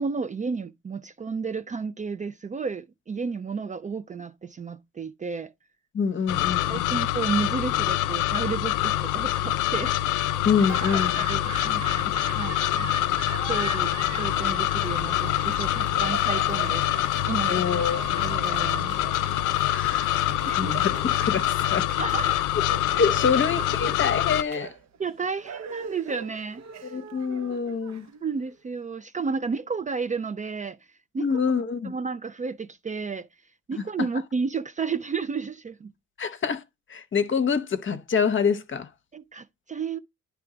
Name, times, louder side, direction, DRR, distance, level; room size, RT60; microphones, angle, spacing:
voice 1, 0.0-5.5 6.7-10.0 10.6-13.1 13.5-17.6 18.2-19.1 20.5-20.8 21.6-21.7 22.0-22.5 25.0-26.9 28.2-30.8 31.1-31.5 31.8-33.3 33.7-35.9 39.1-40.0, right 5 dB, 25° right, 0.4 m, -32 dB
voice 2, 5.9-7.0 10.4-11.2 17.5-18.2 19.7-20.3 20.5-21.9 22.9-24.7 26.9-28.1 31.2-31.9 36.2-36.6 36.9-38.9, left 6 dB, 40° left, 0.8 m, -26 dB
sound 1, 6.3-24.4, left 14 dB, 90° left, 0.5 m, -25 dB
Laughter / Applause, 10.4-28.5, right 7 dB, 60° right, 0.9 m, -40 dB
9.7 x 3.4 x 4.8 m
cardioid pair, 90°, 30 cm